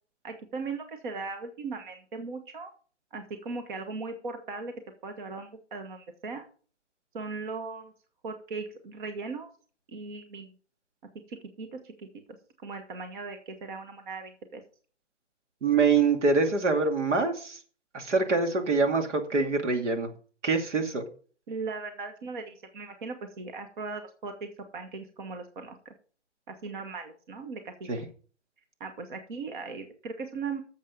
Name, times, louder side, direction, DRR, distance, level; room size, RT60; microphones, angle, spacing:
voice 1, 0.2-2.7 3.1-4.7 5.0-6.4 7.1-7.9 8.2-9.5 9.9-10.5 11.3-12.1 12.6-14.6 21.5-25.9 26.5-27.9 28.8-30.6, right 4 dB, 45° right, 8 dB, 1.4 m, -38 dB
voice 2, 15.6-17.6 17.9-20.1 20.4-21.0 27.9-28.0, right 4 dB, 80° right, 5 dB, 2.5 m, -25 dB
11.0 x 7.5 x 5.4 m, 0.42 s
hypercardioid pair, 165°, 35 cm